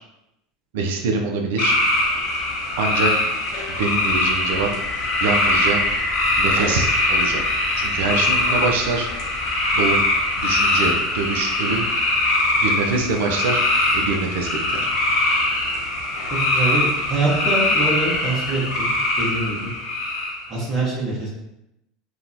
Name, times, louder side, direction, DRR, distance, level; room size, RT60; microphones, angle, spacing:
voice 1, 0.7-1.8 2.8-3.3 3.8-4.7 5.2-5.8 6.4-7.4 7.8-9.1 9.7-10.0 10.4-11.9 12.6-13.6 13.9-14.9, right 4 dB, 70° right, 2 dB, 0.4 m, -24 dB
sound 1, 1.6-20.5, left 2 dB, 60° left, 0.7 m, -22 dB
sound 2, 3.4-15.3, left 2 dB, 15° left, 0.3 m, -33 dB
voice 2, 16.3-18.9 19.2-19.7 20.5-21.3, right 3 dB, 45° right, -8 dB, 0.9 m, -24 dB
2.8 x 2.2 x 2.6 m, 0.86 s
hypercardioid pair, 80°, 0 cm